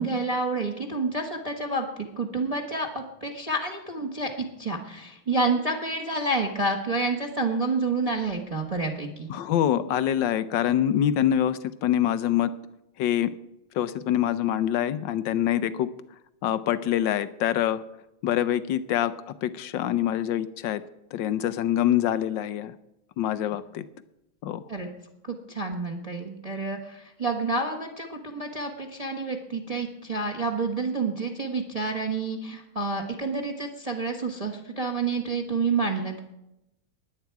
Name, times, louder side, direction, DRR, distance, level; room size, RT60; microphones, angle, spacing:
voice 1, 0.0-9.3 24.7-24.9 25.3-36.2, right 3 dB, 20° right, 2 dB, 1.2 m, -29 dB
voice 2, 9.3-12.5 13.0-13.3 13.7-15.9 16.4-17.8 18.2-20.8 21.1-22.7 23.2-23.8 24.4-24.6, left 11 dB, 70° left, 14 dB, 1.2 m, -25 dB
21.0 x 8.6 x 4.7 m, 0.89 s
omnidirectional pair, 2.4 m